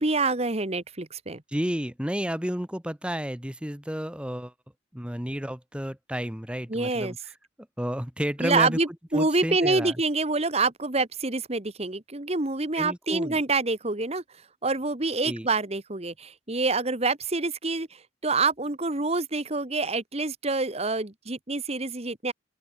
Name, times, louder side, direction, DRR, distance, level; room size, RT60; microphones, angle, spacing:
voice 1, 0.0-1.4 6.7-7.1 8.4-14.2 14.6-17.9 18.2-22.3, right 3 dB, 35° right, 1.5 m, -26 dB
voice 2, 1.5-4.5 4.9-7.2 7.8-8.8 9.1-10.0 12.8-13.4 15.2-15.5, equal, 5° right, 1.4 m, -31 dB
open air
head